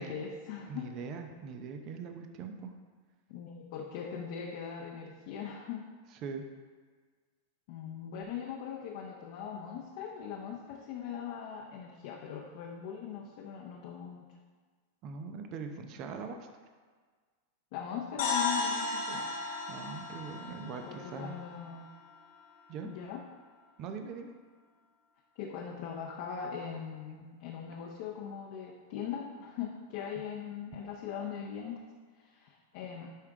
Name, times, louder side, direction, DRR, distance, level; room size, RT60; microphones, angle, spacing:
voice 1, 0.0-0.9 3.3-5.9 7.7-14.2 17.7-19.3 20.6-21.9 22.8-23.2 25.4-31.8 32.1-33.1, left 7 dB, 60° left, -1 dB, 0.8 m, -40 dB
voice 2, 0.7-2.7 6.2-6.4 15.0-16.5 19.7-21.3 22.7-22.9 23.8-24.3, right 5 dB, 45° right, 5 dB, 0.7 m, -41 dB
sound 1, 18.2-22.1, left 3 dB, 75° left, 1.5 m, -35 dB
9.9 x 3.6 x 3.6 m, 1.5 s
hypercardioid pair, 115°, 0 cm